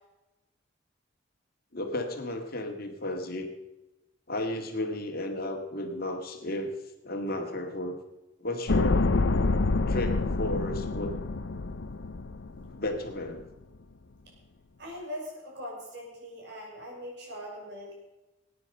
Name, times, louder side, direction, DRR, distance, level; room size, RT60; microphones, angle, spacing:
voice 1, 1.7-3.5 4.3-6.7 7.0-7.9 8.4-9.1 9.9-11.2 12.6-13.4, left 1 dB, 50° left, 4 dB, 1.9 m, -33 dB
sound 1, 8.7-13.0 13.2-13.3, left 3 dB, 70° left, 0.7 m, -27 dB
voice 2, 14.8-17.9, equal, 60° right, -2 dB, 5.8 m, -41 dB
20.0 x 9.6 x 5.5 m, 1.0 s
head